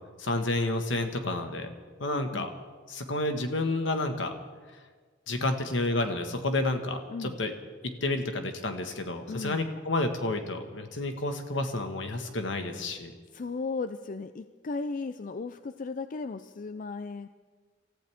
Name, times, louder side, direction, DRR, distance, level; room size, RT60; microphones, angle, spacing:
voice 1, 0.2-1.7 2.0-2.5 2.9-4.3 5.3-7.5 7.8-13.1, left 2 dB, 70° left, 6 dB, 1.6 m, -30 dB
voice 2, 2.1-2.5 7.1-7.4 9.3-9.6 13.3-17.3, left 4 dB, 45° left, 11 dB, 0.4 m, -36 dB
28.0 x 14.5 x 3.6 m, 1.5 s
head